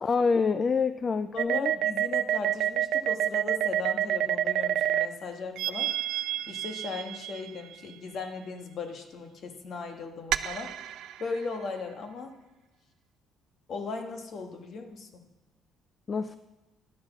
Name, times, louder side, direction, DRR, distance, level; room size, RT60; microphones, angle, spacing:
voice 1, 0.0-1.7 16.1-16.4, left 5 dB, 25° left, 12 dB, 0.3 m, -26 dB
voice 2, 1.3-10.9 11.2-12.3 13.7-15.2, left 4 dB, 45° left, 5 dB, 1.4 m, -38 dB
sound 1, 1.4-5.1 5.6-7.8 10.3-11.4, right 11 dB, 70° right, 0.5 m, -28 dB
11.5 x 9.5 x 6.0 m, 1.1 s
cardioid pair, 150°, 0 cm